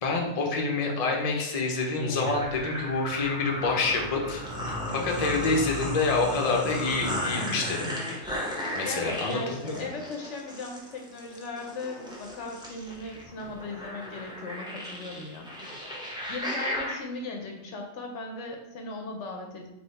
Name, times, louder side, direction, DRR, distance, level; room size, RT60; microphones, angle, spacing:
voice 1, 0.0-7.9 8.7-9.9, left 3 dB, 40° left, 0 dB, 0.5 m, -27 dB
sound 1, 2.0-17.0, equal, 5° right, 0.7 m, -35 dB
voice 2, 8.9-15.5 16.3-19.7, left 2 dB, 65° left, 2 dB, 0.9 m, -38 dB
3.6 x 3.1 x 4.0 m, 0.93 s
omnidirectional pair, 1.4 m